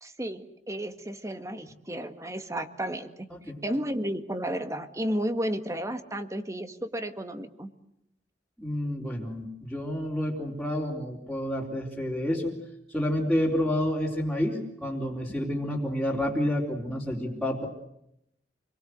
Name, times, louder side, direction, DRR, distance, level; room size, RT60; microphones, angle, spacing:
voice 1, 0.0-3.3 3.6-7.7, equal, 20° right, 8 dB, 1.8 m, -32 dB
voice 2, 8.6-12.6 12.9-17.7, left 1 dB, ahead, -5 dB, 4.0 m, -29 dB
28.5 x 22.0 x 8.0 m, 0.79 s
head